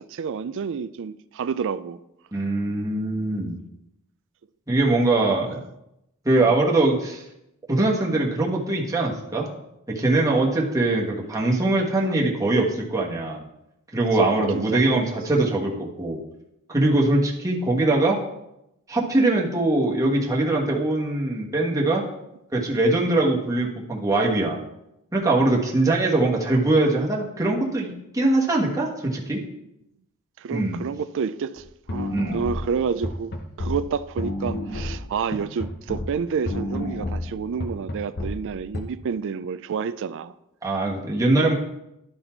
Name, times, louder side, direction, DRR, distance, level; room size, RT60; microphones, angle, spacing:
voice 1, 0.0-2.0 5.2-5.4 6.4-6.6 12.0-12.1 14.2-14.9 16.9-17.0 30.4-31.6 31.9-40.3, right 6 dB, 60° right, 0.4 m, -29 dB
voice 2, 2.3-3.6 4.7-5.6 6.2-7.2 7.7-9.5 9.9-13.4 13.9-16.2 16.7-18.2 18.9-22.0 22.5-24.6 25.1-29.4 30.5-30.8 32.1-32.4 40.6-41.5, right 2 dB, 15° right, 1.3 m, -22 dB
sound 1, 31.6-31.7 31.9-36.1 36.4-38.8, left 1 dB, 50° left, 0.8 m, -30 dB
12.0 x 4.1 x 4.4 m
head